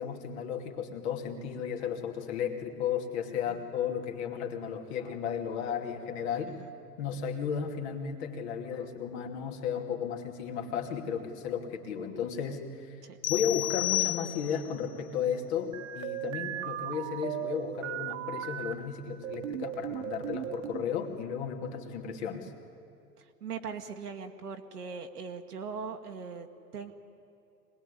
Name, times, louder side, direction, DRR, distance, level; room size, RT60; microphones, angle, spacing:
voice 1, 0.0-6.5 7.0-13.0 13.3-22.5, left 7 dB, 40° left, 4 dB, 2.6 m, -34 dB
sound 1, 13.2-14.8, left 20 dB, 25° left, 0.8 m, -31 dB
sound 2, 15.7-18.7 19.2-20.8, right 11 dB, 50° right, 1.7 m, -37 dB
voice 2, 23.2-26.5 26.7-26.9, right 5 dB, 70° right, 4 dB, 1.7 m, -40 dB
25.0 x 19.5 x 9.9 m, 2.6 s
figure-of-eight pair, 105°, 49 cm